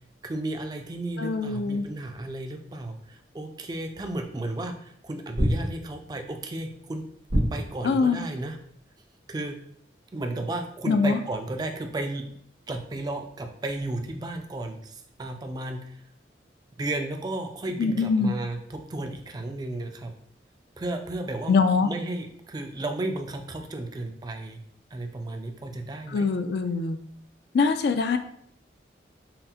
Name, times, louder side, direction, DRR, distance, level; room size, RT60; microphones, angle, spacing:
voice 1, 0.2-7.1 7.5-8.6 9.3-9.6 10.1-12.3 12.7-16.0 16.8-20.1 20.8-24.6 24.9-26.3, right 2 dB, 20° right, 5 dB, 0.3 m, -33 dB
voice 2, 1.2-1.9 7.8-8.2 10.9-11.2 17.8-18.3 21.5-21.9 26.1-27.0 27.5-28.2, left 4 dB, 60° left, 8 dB, 0.3 m, -23 dB
sound 1, 4.1-4.2 5.3-6.2 7.3-8.0, equal, 85° right, 1.3 m, -26 dB
5.6 x 2.1 x 2.7 m, 0.67 s
head